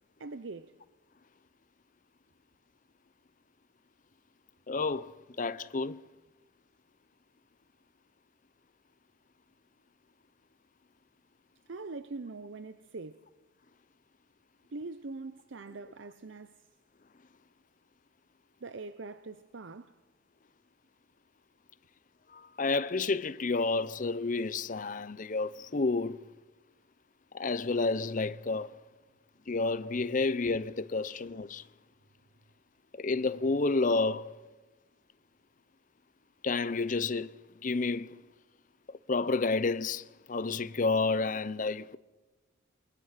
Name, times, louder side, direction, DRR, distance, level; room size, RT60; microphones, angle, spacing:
voice 1, 0.2-0.7 11.7-13.2 14.7-16.5 18.6-20.0, right 3 dB, 70° right, 0.7 m, -42 dB
voice 2, 4.7-5.1 5.4-6.0 22.3-26.2 27.3-28.8 29.5-31.6 32.9-34.3 36.4-37.3 37.6-38.1 39.1-42.0, left 3 dB, 40° left, 0.6 m, -30 dB
29.0 x 23.0 x 5.8 m
head